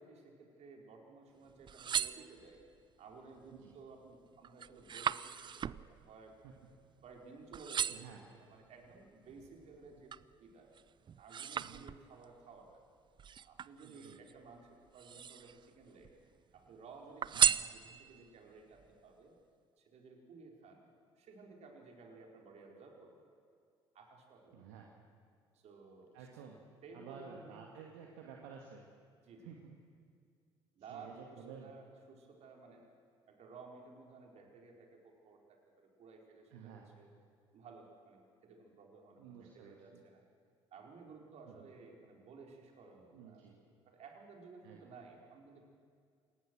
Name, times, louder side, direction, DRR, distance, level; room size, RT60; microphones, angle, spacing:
voice 1, 0.0-2.6 3.0-6.4 7.0-10.1 10.4-10.7 11.0-12.8 13.4-16.1 16.5-19.4 19.8-20.9 21.2-23.4 23.9-24.7 25.5-26.3 26.8-27.6 29.2-29.5 30.7-32.9 33.3-37.1 37.5-40.2 40.7-45.6, right 4 dB, 55° right, 1 dB, 4.7 m, -56 dB
sound 1, 1.5-2.8 3.4-3.8 4.1-7.2 7.5-8.2 8.8-10.3 10.7-12.3 13.2-14.3 14.9-15.7 16.0-16.7 17.2-18.3 18.8-18.9, right 8 dB, 35° right, 0.6 m, -36 dB
voice 2, 7.9-8.2 11.5-11.8 13.8-14.2 17.3-17.5 24.5-24.9 26.1-26.6 26.9-28.8 29.4-29.7 30.8-31.7 36.5-36.9 39.2-40.0 41.5-41.7 43.1-43.6 44.6-44.8, right 7 dB, 70° right, 0 dB, 2.2 m, -52 dB
27.5 x 19.5 x 6.3 m, 2.2 s
hypercardioid pair, 55°, 14 cm